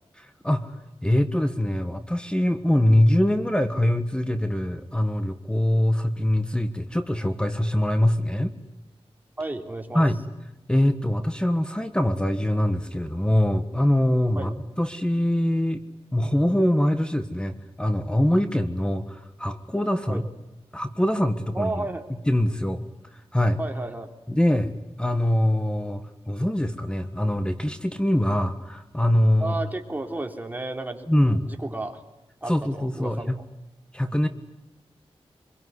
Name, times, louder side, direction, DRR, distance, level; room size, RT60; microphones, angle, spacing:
voice 1, 0.2-0.8 1.0-8.5 9.9-10.2 10.7-14.5 14.8-15.8 16.1-20.2 20.7-21.9 22.3-23.6 24.3-29.6 31.1-31.4 32.5-33.4 33.9-34.3, left 1 dB, 10° left, 9 dB, 1.5 m, -23 dB
voice 2, 9.4-10.0 14.3-14.5 20.1-20.2 21.5-22.0 23.6-24.1 29.4-32.0 32.4-33.3, right 2 dB, 15° right, 4 dB, 3.3 m, -32 dB
25.0 x 23.0 x 9.8 m, 0.96 s
wide cardioid pair, 85°, 11 cm